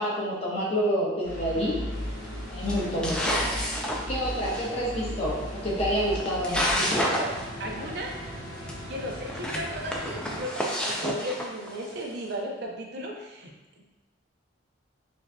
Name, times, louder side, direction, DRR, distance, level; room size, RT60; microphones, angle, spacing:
voice 1, 0.0-1.8 2.5-3.4 3.9-5.4 5.6-6.7 6.9-7.2, equal, 30° left, -6 dB, 1.0 m, -28 dB
sound 1, 1.2-10.4, equal, 65° left, 0.9 m, -37 dB
sound 2, 2.0-2.3 2.7-4.7 5.7-5.8 6.1-7.5 7.7-7.8 8.1-8.2 8.7-8.8 9.2-12.0, equal, 5° left, 0.3 m, -29 dB
voice 2, 7.0-7.3 7.6-8.2 8.9-13.5 13.8-13.9, equal, 50° right, 0 dB, 0.6 m, -35 dB
6.3 x 2.7 x 2.2 m, 1.1 s
head